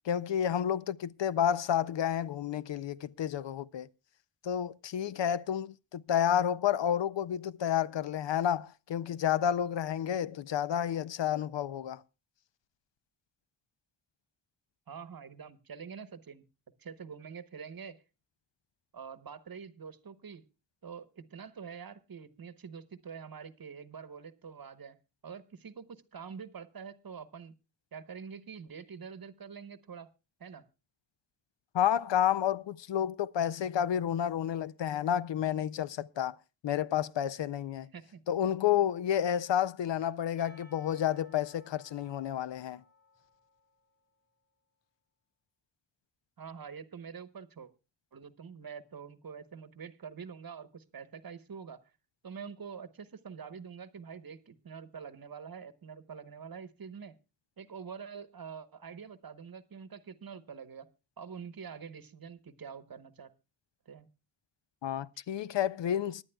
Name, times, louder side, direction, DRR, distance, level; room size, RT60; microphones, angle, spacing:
voice 1, 0.1-3.9 4.4-12.0 31.7-36.4 36.6-37.9 38.3-42.8 64.8-66.2, left 9 dB, 70° left, 0.6 m, -30 dB
voice 2, 14.9-16.4 16.8-18.0 18.9-20.4 20.8-25.0 25.2-27.5 27.9-30.1 30.4-30.7 37.9-38.2 46.4-47.7 48.1-51.8 52.2-57.1 57.6-60.9 61.2-63.3 63.9-64.1, right 6 dB, 50° right, 1.0 m, -46 dB
Percussion, 40.4-44.3, left 2 dB, 20° left, 4.8 m, -61 dB
24.5 x 10.5 x 2.2 m
wide cardioid pair, 95°, 45 cm